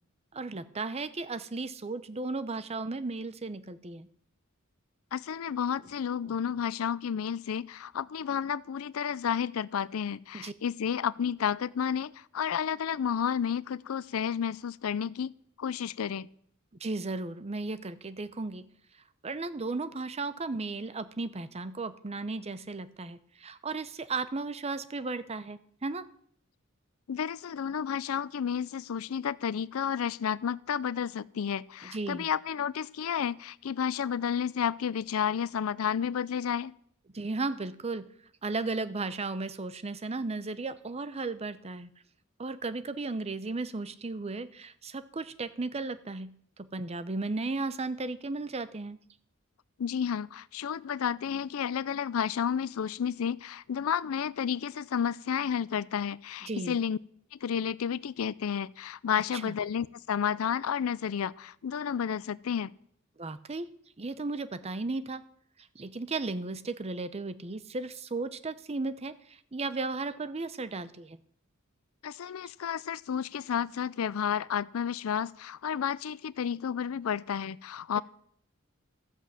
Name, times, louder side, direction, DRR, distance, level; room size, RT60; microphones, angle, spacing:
voice 1, 0.3-4.1 6.2-6.4 10.3-10.5 16.8-18.7 19.2-26.1 31.8-32.3 37.1-38.1 38.4-41.9 42.4-46.3 46.6-49.0 56.4-56.8 59.3-59.5 63.2-63.7 64.0-65.2 65.7-71.2, right 3 dB, 30° right, 13 dB, 0.7 m, -35 dB
voice 2, 5.1-16.3 27.1-36.7 49.8-57.0 57.3-62.7 72.0-78.0, left 8 dB, 80° left, 19 dB, 0.4 m, -31 dB
13.5 x 8.2 x 7.4 m, 0.65 s
head